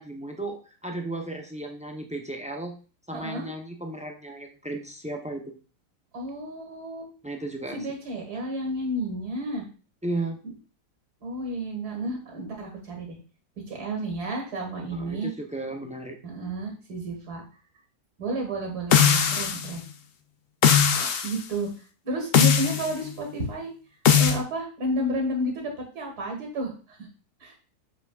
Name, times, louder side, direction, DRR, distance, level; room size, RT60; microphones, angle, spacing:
voice 1, 0.0-2.7 3.1-5.4 7.2-7.9 10.0-10.4 14.8-16.2, right 2 dB, 10° right, 3 dB, 0.3 m, -34 dB
voice 2, 3.1-3.5 6.1-7.1 7.7-9.6 10.4-10.5 11.2-13.2 13.7-15.3 16.2-17.4 18.2-19.8 20.9-21.7 22.0-23.7 24.2-27.0 27.4-27.5, right 1 dB, 80° right, 1 dB, 2.4 m, -31 dB
sound 1, 18.9-19.7 20.6-21.3 22.3-22.9 24.1-24.4, left 8 dB, 65° left, 0.5 m, -19 dB
7.1 x 5.7 x 2.4 m, 0.37 s
omnidirectional pair, 1.6 m